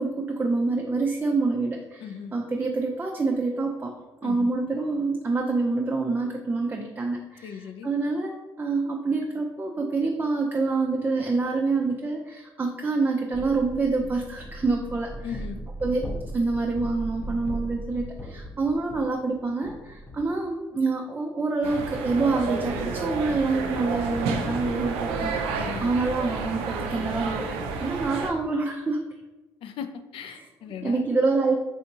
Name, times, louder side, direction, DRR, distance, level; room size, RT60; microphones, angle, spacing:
voice 1, 0.0-3.9 4.2-15.4 15.8-29.1 30.3-30.5 30.8-31.6, right 3 dB, 20° right, 1 dB, 0.4 m, -27 dB
voice 2, 2.0-2.3 4.2-4.5 7.4-7.9 15.2-15.6 25.6-25.9 29.6-31.1, left 7 dB, 65° left, 8 dB, 0.3 m, -37 dB
sound 1, 13.3-20.4, equal, 20° left, 0.6 m, -38 dB
sound 2, 21.6-28.3, right 4 dB, 85° right, 0.4 m, -30 dB
3.4 x 2.6 x 2.7 m, 1.1 s
supercardioid pair, 65°, 10 cm